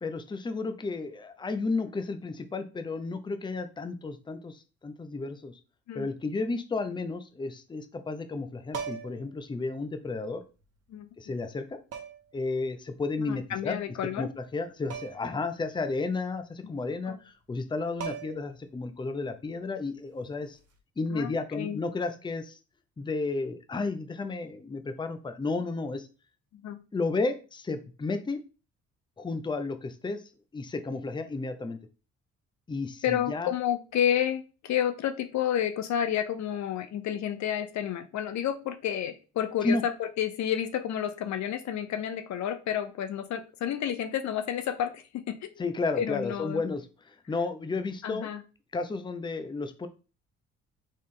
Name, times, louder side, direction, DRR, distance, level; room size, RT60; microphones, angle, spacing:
voice 1, 0.0-5.6 5.9-10.4 11.2-11.8 12.3-13.8 14.2-20.6 21.0-22.6 23.0-26.1 26.9-28.4 29.2-30.2 30.5-31.8 32.7-33.5 39.6-39.8 45.6-48.3 48.7-49.9, left 3 dB, 15° left, 9 dB, 0.6 m, -32 dB
sound 1, 8.7-9.3 10.6-10.7 11.9-12.4 14.9-15.3 15.6-15.7 17.6-17.7 18.0-18.6 20.5-20.8, right 7 dB, 55° right, 1.0 m, -38 dB
voice 2, 13.3-14.3 17.1-17.2 21.1-21.8 26.5-26.8 33.0-45.6 46.0-46.6 48.0-48.4, left 10 dB, 65° left, 10 dB, 0.6 m, -30 dB
4.3 x 3.0 x 3.7 m, 0.33 s
cardioid pair, 90°, 30 cm